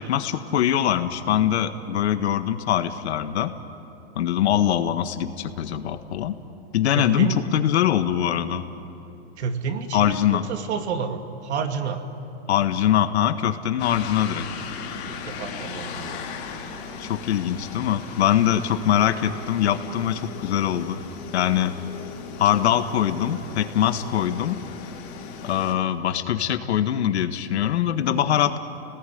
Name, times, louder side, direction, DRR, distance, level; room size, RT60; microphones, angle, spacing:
voice 1, 0.0-3.5 4.1-6.4 6.7-8.6 9.9-10.4 12.5-14.5 17.0-21.0 21.3-21.7 22.4-24.6 25.4-28.6, left 10 dB, 80° left, 9 dB, 1.7 m, -23 dB
voice 2, 6.9-7.4 9.4-12.0 15.1-16.2, right 6 dB, 80° right, 6 dB, 2.5 m, -29 dB
sound 1, 13.8-25.7, left 5 dB, 30° left, 2.9 m, -37 dB
29.0 x 19.0 x 9.4 m, 3.0 s
supercardioid pair, 170°, 33 cm